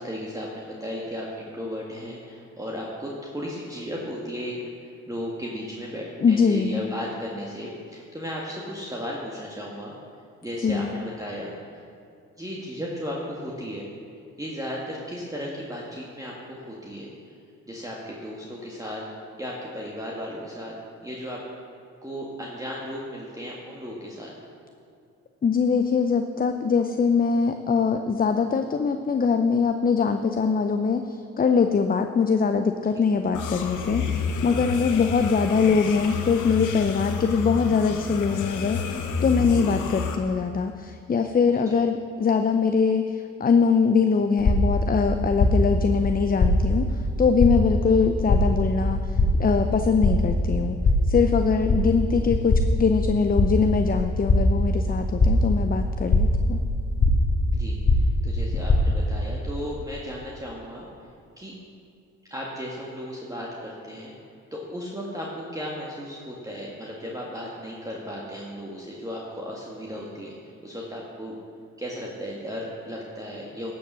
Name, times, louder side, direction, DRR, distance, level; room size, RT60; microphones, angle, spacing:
voice 1, 0.0-9.9 10.4-11.9 12.4-13.8 14.4-17.1 17.7-19.0 19.4-20.7 21.0-21.4 22.0-24.3 39.6-39.8 41.7-41.8 57.5-60.9 61.4-61.5 62.3-64.1 64.5-70.4 70.6-71.4 71.8-73.7, equal, 10° right, -3 dB, 1.8 m, -35 dB
voice 2, 6.2-6.9 10.6-10.9 25.4-50.8 51.1-56.6, left 5 dB, 30° left, 7 dB, 0.6 m, -23 dB
sound 1, 33.3-40.2, left 5 dB, 75° left, 1.1 m, -30 dB
sleepy heartbeat, 44.4-59.2, left 1 dB, 45° left, 1.5 m, -23 dB
12.0 x 7.1 x 6.3 m, 2.5 s
supercardioid pair, 60°, 31 cm